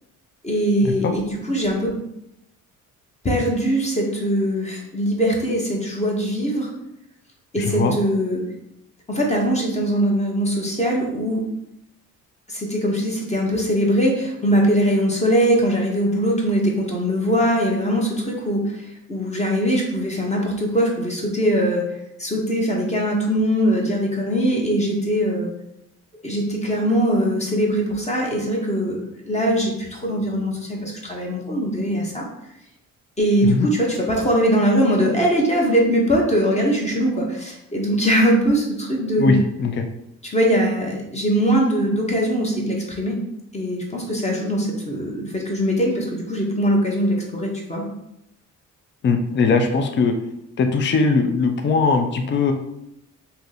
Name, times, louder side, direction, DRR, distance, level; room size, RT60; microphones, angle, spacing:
voice 1, 0.4-1.9 3.2-6.7 7.5-8.4 9.1-11.4 12.5-21.9 22.2-25.5 26.2-29.0 29.3-32.2 33.2-39.4 40.2-43.2 43.5-47.8, equal, 20° left, -1 dB, 0.9 m, -21 dB
voice 2, 49.0-50.1 50.6-52.5, left 4 dB, 40° left, 6 dB, 0.5 m, -19 dB
2.8 x 2.7 x 3.9 m, 0.81 s
cardioid pair, 90°, 30 cm